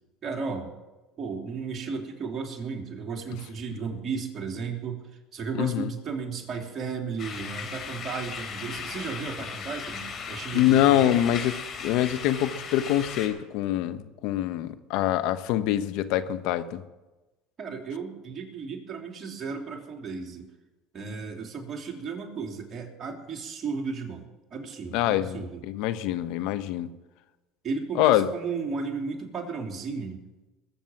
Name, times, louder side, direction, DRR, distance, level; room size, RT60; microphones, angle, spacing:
voice 1, 0.2-0.7 1.2-5.0 5.3-11.2 17.6-20.5 20.9-25.6 27.6-30.2, right 5 dB, 40° right, 1 dB, 3.3 m, -34 dB
voice 2, 5.6-5.9 10.5-11.5 11.8-16.8 24.9-26.9 28.0-28.3, left 13 dB, 70° left, 12 dB, 1.0 m, -24 dB
sound 1, 7.2-13.3, left 6 dB, 45° left, 3.6 m, -37 dB
21.0 x 7.2 x 7.5 m, 1.1 s
supercardioid pair, 90°, 0 cm